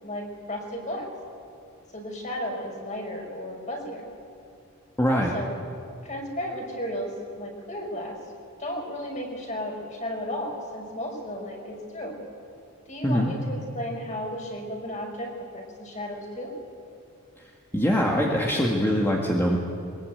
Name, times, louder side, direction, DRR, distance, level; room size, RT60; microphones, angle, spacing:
voice 1, 0.0-1.1 1.9-4.1 5.1-5.6 6.0-8.2 8.6-12.2 12.9-16.5, left 1 dB, 35° left, 1 dB, 5.4 m, -34 dB
voice 2, 5.0-5.3 13.0-13.3 17.7-19.6, equal, 10° left, -2 dB, 1.9 m, -23 dB
23.0 x 21.5 x 9.3 m, 2.5 s
head